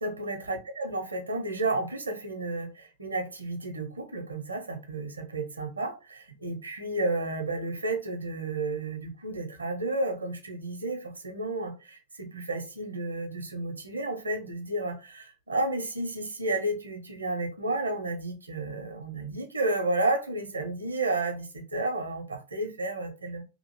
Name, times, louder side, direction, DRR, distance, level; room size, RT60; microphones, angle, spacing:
voice 1, 0.0-23.4, right 2 dB, 80° right, 0.7 m, -32 dB
2.9 x 2.5 x 3.0 m
figure-of-eight pair, 90°, 0 cm